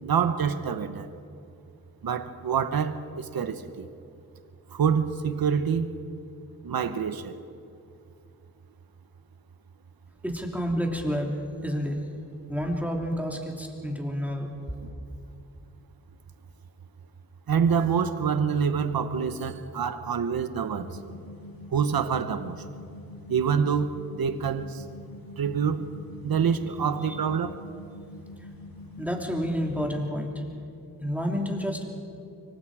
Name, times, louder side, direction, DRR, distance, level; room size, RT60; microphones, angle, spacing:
voice 1, 0.0-1.1 2.0-3.9 4.7-5.9 6.6-7.4 14.8-14.9 17.5-21.0 21.7-22.6 23.3-24.8 25.4-25.9 26.2-27.6, right 7 dB, 85° right, 1.0 m, -26 dB
voice 2, 10.2-12.1 12.5-14.5 27.1-27.2 29.0-30.5 31.0-31.8, equal, 5° right, 3.0 m, -29 dB
sound 1, 20.8-30.1, left 3 dB, 80° left, 1.7 m, -45 dB
25.0 x 24.5 x 4.9 m
wide cardioid pair, 100°, 35 cm